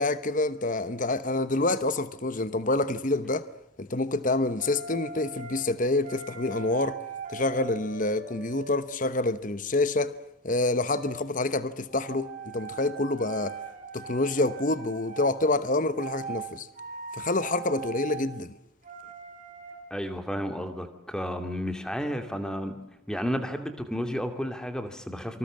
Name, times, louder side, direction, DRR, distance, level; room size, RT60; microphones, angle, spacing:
voice 1, 0.0-3.5 3.8-7.0 7.3-10.1 10.4-13.5 13.9-16.7 17.2-18.5, left 2 dB, 40° left, 1.0 m, -27 dB
sound 1, 4.5-5.6 6.0-9.1 10.7-11.2 11.9-15.3 15.9-16.5 16.7-18.3 18.8-19.8, right 5 dB, 35° right, 4.5 m, -41 dB
voice 2, 19.9-22.8 23.1-25.4, equal, 5° left, 2.5 m, -32 dB
27.5 x 25.0 x 7.5 m
head